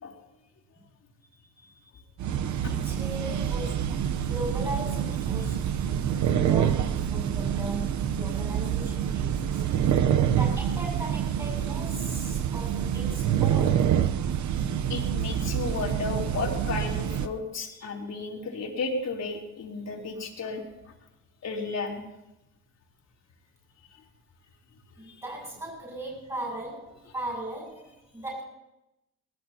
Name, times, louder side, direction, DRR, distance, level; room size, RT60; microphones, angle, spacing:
sound 1, 2.2-17.3, right 9 dB, 70° right, 0.9 m, -27 dB
voice 1, 2.7-4.0 4.3-5.7 6.3-9.6 10.4-14.0 25.0-28.4, right 1 dB, 15° right, -2 dB, 7.2 m, -38 dB
voice 2, 14.9-20.6 21.4-22.0 25.1-25.2, left 3 dB, 60° left, 0 dB, 3.6 m, -33 dB
21.0 x 20.0 x 2.9 m, 0.93 s
cardioid pair, 90°, 30 cm